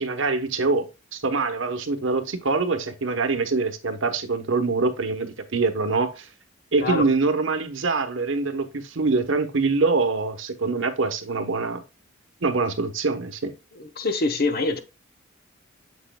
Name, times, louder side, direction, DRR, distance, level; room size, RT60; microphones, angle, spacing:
voice 1, 0.0-6.3 6.7-11.8 12.4-13.5, right 3 dB, 70° right, 1.0 m, -24 dB
voice 2, 13.7-14.8, left 2 dB, 50° left, 0.8 m, -25 dB
7.5 x 6.2 x 2.2 m
head